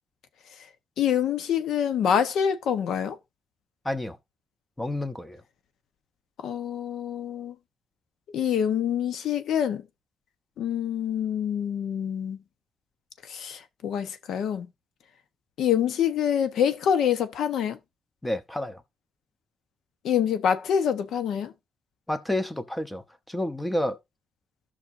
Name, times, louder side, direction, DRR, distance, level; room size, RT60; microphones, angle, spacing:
voice 1, 1.0-3.2 6.4-7.5 8.3-9.9 10.6-12.4 13.3-14.7 15.6-17.8 20.0-21.5, left 8 dB, 85° left, 1.2 m, -26 dB
voice 2, 3.8-4.2 4.8-5.4 18.2-18.8 22.1-24.0, left 1 dB, 10° left, 1.1 m, -30 dB
14.0 x 6.2 x 2.7 m
cardioid pair, 135°, 0 cm